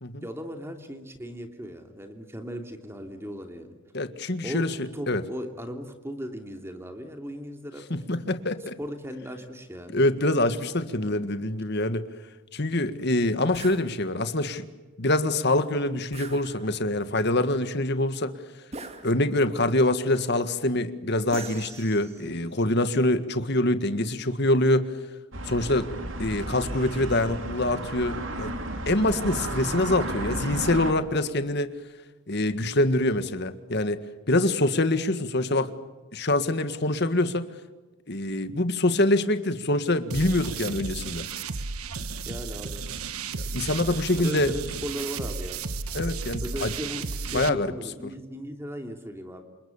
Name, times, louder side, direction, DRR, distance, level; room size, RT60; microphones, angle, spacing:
voice 1, 0.2-3.7 4.4-4.6 4.9-7.8 8.8-10.0 42.3-42.8 44.2-45.6 46.4-49.4, equal, 10° right, 5 dB, 2.9 m, -37 dB
voice 2, 3.9-5.2 7.9-8.8 9.9-12.1 12.5-14.6 15.0-18.3 19.0-24.9 25.4-25.9 26.2-28.5 28.9-31.7 32.3-34.0 34.3-35.7 36.1-37.4 38.1-41.3 43.3-44.5 45.9-46.7 47.3-47.7 48.0-48.1, left 1 dB, 50° left, 10 dB, 1.8 m, -25 dB
sound 1, 13.5-13.9 16.1-16.9 18.7-19.5 21.3-22.4, right 3 dB, 30° right, 2.3 m, -42 dB
sound 2, 25.3-30.9, right 1 dB, 65° right, 3.3 m, -33 dB
sound 3, 40.1-47.5, right 4 dB, 90° right, 1.4 m, -34 dB
29.0 x 27.0 x 7.2 m, 1.2 s
head